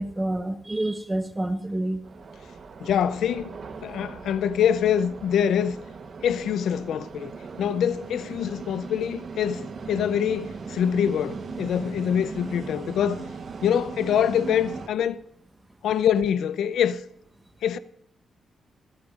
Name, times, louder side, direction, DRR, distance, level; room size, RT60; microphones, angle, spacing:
voice 1, 0.0-2.0 11.7-11.8, right 1 dB, 15° right, 1.2 m, -28 dB
sound 1, 2.0-14.9, right 5 dB, 50° right, 1.1 m, -39 dB
voice 2, 2.8-3.6 3.8-5.8 6.2-7.3 7.6-13.3 13.6-15.2 15.8-17.0 17.6-17.8, left 9 dB, 90° left, 0.5 m, -24 dB
25.5 x 8.8 x 2.5 m
wide cardioid pair, 135°, 0 cm